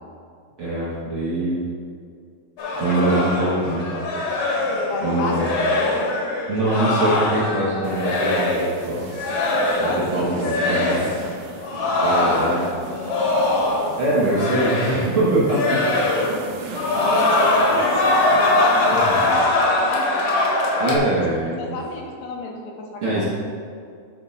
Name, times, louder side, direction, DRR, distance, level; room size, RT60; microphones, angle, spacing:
voice 1, 0.6-1.6 2.7-3.9 5.0-5.5 6.5-9.0 9.8-11.0 12.0-12.6 14.0-15.9 19.1-19.2 20.8-21.8 23.0-23.2, right 2 dB, 55° right, -8 dB, 1.6 m, -23 dB
sound 1, 2.6-8.7 9.1-10.1 10.4-11.2 11.6-14.0 14.2-15.2 15.5-16.4 16.7-21.0, left 2 dB, 60° left, 2.1 m, -22 dB
voice 2, 4.9-6.1 9.8-11.1 12.2-13.1 16.8-20.2 21.3-23.2, left 3 dB, 80° left, 0 dB, 2.5 m, -31 dB
sound 2, 7.8-19.3, right 4 dB, 90° right, 2.7 m, -37 dB
11.0 x 3.9 x 5.5 m, 2.2 s
omnidirectional pair, 4.2 m